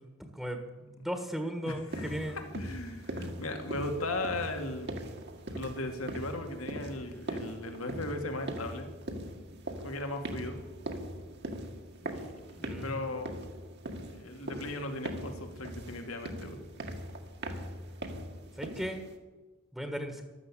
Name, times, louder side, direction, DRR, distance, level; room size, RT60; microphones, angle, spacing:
voice 1, 0.0-2.4 12.6-13.0 18.5-19.0 19.7-20.2, equal, ahead, 5 dB, 1.5 m, -37 dB
voice 2, 1.6-4.9 5.5-8.9 9.8-10.6 12.0-12.3 12.6-13.4 14.1-16.6, left 2 dB, 90° left, 5 dB, 2.4 m, -37 dB
sound 1, 1.9-19.2, right 1 dB, 55° right, 2.0 m, -41 dB
13.5 x 12.0 x 8.6 m, 1.2 s
head